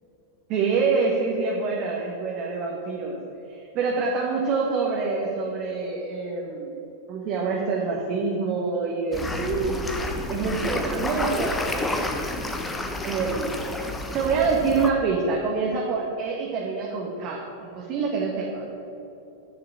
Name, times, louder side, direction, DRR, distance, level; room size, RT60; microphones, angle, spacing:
voice 1, 0.5-3.2 3.7-6.7 7.1-9.9 10.3-12.0 13.0-13.5 14.1-18.7, right 4 dB, 40° right, -2 dB, 1.7 m, -26 dB
sound 1, 9.1-14.9, left 2 dB, 10° left, 1.1 m, -30 dB
10.0 x 6.8 x 8.9 m, 2.9 s
figure-of-eight pair, 90°, 0 cm